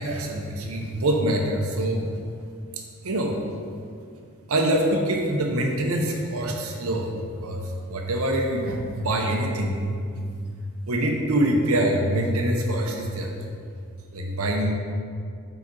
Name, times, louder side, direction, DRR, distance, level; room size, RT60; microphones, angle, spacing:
voice 1, 0.0-2.1 3.0-3.4 4.5-9.8 10.2-10.3 10.9-13.4 14.1-14.7, right 1 dB, 75° right, 1 dB, 0.8 m, -25 dB
5.1 x 5.0 x 4.1 m, 2.3 s
head